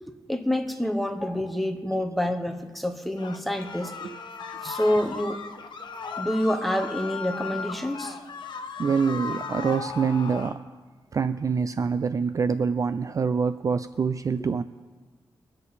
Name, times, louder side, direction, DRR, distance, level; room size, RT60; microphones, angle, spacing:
voice 1, 0.0-3.9 4.6-5.4 6.2-8.2, left 1 dB, ahead, 5 dB, 1.1 m, -27 dB
sound 1, 3.2-10.6, left 5 dB, 60° left, 1.1 m, -36 dB
voice 2, 8.8-10.6 11.1-14.6, right 5 dB, 40° right, 12 dB, 0.3 m, -25 dB
23.0 x 8.6 x 4.2 m, 1.4 s
wide cardioid pair, 145°, 9 cm